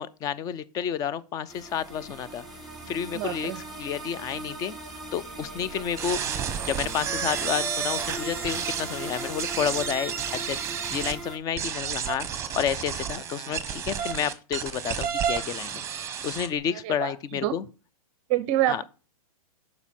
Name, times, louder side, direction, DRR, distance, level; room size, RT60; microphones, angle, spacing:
voice 1, 0.0-2.5 2.9-6.2 6.6-10.6 10.9-17.6 18.7-18.8, left 8 dB, 20° left, 0.4 m, -30 dB
sound 1, 1.5-11.4, right 2 dB, ahead, 2.1 m, -40 dB
voice 2, 3.1-3.6 16.8-17.1 17.4-17.6 18.3-18.8, right 13 dB, 35° right, 0.6 m, -26 dB
sound 2, 6.0-11.1 11.6-16.5, right 8 dB, 15° right, 1.0 m, -31 dB
7.0 x 5.3 x 4.3 m
hypercardioid pair, 130°, 19 cm